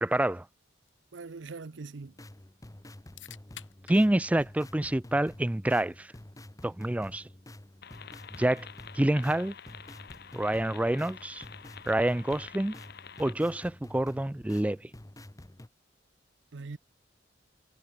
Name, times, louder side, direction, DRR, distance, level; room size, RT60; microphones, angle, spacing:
voice 1, 0.0-0.5 3.9-6.1 6.6-7.3 8.4-8.7 9.0-9.5 10.3-11.4 11.9-12.7 13.2-14.9, right 1 dB, 10° right, 0.4 m, -27 dB
sound 1, 0.8-12.7, left 10 dB, 85° left, 6.2 m, -59 dB
voice 2, 1.1-2.1 16.5-16.8, right 4 dB, 70° right, 0.7 m, -41 dB
sound 2, 2.0-15.7, left 1 dB, 20° left, 1.0 m, -49 dB
sound 3, 7.8-13.3, left 7 dB, 60° left, 1.5 m, -48 dB
head